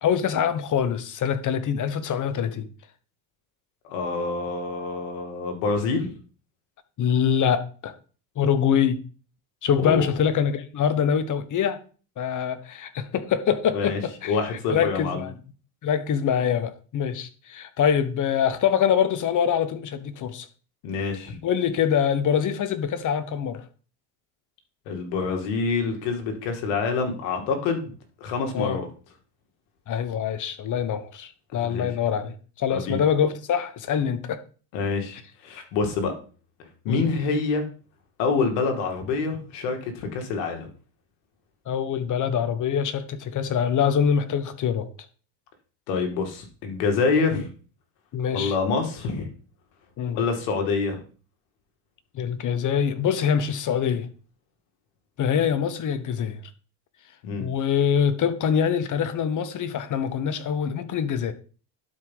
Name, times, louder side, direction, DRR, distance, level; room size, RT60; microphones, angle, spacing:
voice 1, 0.0-2.7 7.0-7.9 8.4-9.0 9.6-11.8 12.2-14.4 14.7-15.3 15.8-20.5 21.4-23.6 28.5-28.8 29.9-34.4 36.9-37.1 41.7-44.9 48.1-48.5 50.0-50.2 52.1-54.1 55.2-56.4 57.4-61.3, left 8 dB, 40° left, 1.1 m, -24 dB
voice 2, 3.8-6.1 9.8-10.1 13.7-14.0 14.2-15.3 20.8-21.4 24.9-27.9 28.2-28.9 31.5-31.9 32.7-33.0 34.7-36.1 36.8-37.6 38.2-40.7 45.9-47.5 48.3-49.3 50.1-51.0 57.2-57.5, left 4 dB, 75° left, 2.3 m, -26 dB
11.5 x 4.9 x 3.9 m
supercardioid pair, 100°, 48 cm